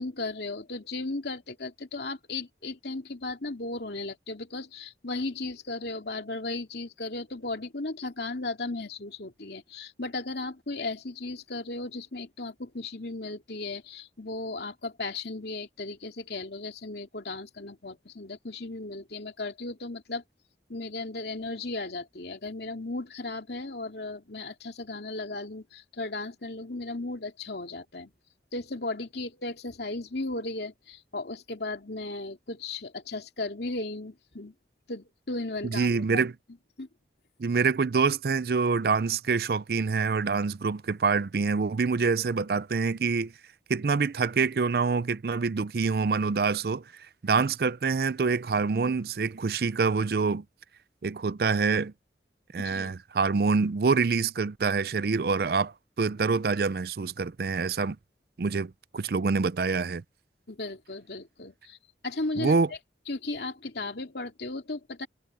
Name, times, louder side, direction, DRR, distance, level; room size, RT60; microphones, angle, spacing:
voice 1, 0.0-20.2 20.7-28.1 28.5-34.5 34.9-36.2 36.8-36.9 52.6-53.0 60.5-61.8 62.0-62.6 63.1-65.1, left 2 dB, 70° left, 2.5 m, -36 dB
voice 2, 35.6-36.3 37.4-43.3 43.7-46.8 47.2-50.4 51.0-51.9 52.5-58.0 58.4-60.0 62.4-62.7, right 4 dB, 60° right, 0.4 m, -26 dB
head